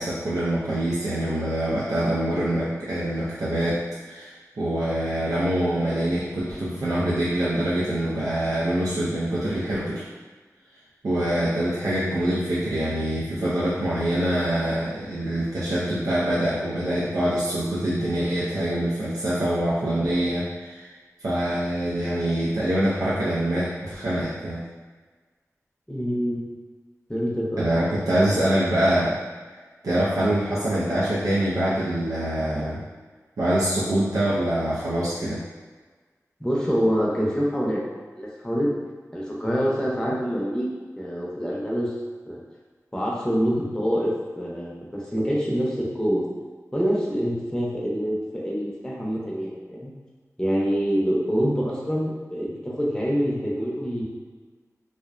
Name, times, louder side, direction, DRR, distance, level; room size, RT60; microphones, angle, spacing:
voice 1, 0.0-10.0 11.0-20.9 21.2-24.6 27.6-29.2 29.8-32.8 33.4-35.4, right 1 dB, 90° right, -9 dB, 0.4 m, -25 dB
voice 2, 25.9-26.4 27.1-27.6 36.4-37.8 38.2-38.7 39.1-40.7 41.0-41.9 42.3-42.4 42.9-46.2 46.7-49.9 50.4-54.0, equal, 10° left, -5 dB, 0.6 m, -25 dB
2.4 x 2.1 x 2.4 m, 1.4 s
wide cardioid pair, 55°, 6 cm